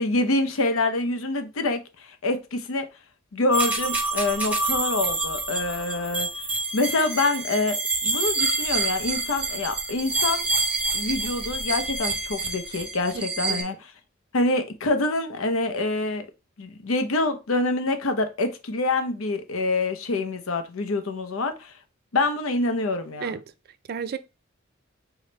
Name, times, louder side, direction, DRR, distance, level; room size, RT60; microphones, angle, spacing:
voice 1, 0.0-2.9 3.3-6.3 6.7-10.5 10.9-13.7 14.3-16.3 16.6-21.7 22.1-23.3, left 2 dB, 80° left, 0.7 m, -26 dB
sound 1, 3.5-13.6, right 3 dB, 5° right, 0.7 m, -27 dB
voice 2, 13.1-13.7 23.2-23.4 23.9-24.2, right 6 dB, 50° right, 0.3 m, -32 dB
4.9 x 2.1 x 3.9 m
head